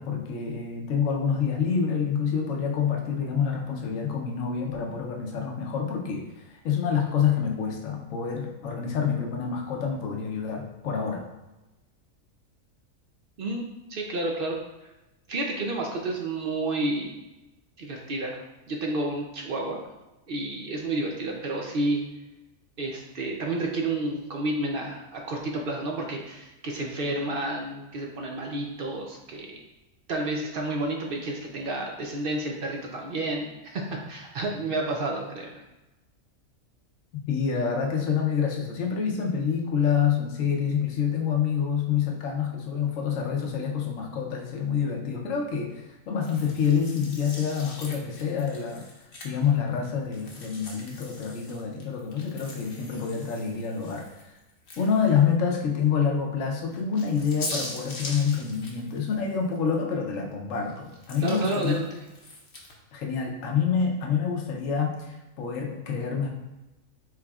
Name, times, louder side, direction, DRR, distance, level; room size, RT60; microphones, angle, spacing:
voice 1, 0.0-11.2 37.3-48.8 49.2-54.3 54.8-61.8 62.9-66.3, left 7 dB, 70° left, 1 dB, 1.1 m, -27 dB
voice 2, 13.4-14.6 15.3-17.2 17.8-19.8 20.3-22.0 22.8-29.6 30.1-35.6 61.2-62.0, right 2 dB, 60° right, 1 dB, 0.6 m, -30 dB
sound 1, 46.2-49.6 50.1-55.3 55.7-55.8 56.7-59.8 60.1-62.8, left 2 dB, 50° left, 0.9 m, -42 dB
4.7 x 4.0 x 2.3 m, 1.0 s
omnidirectional pair, 1.4 m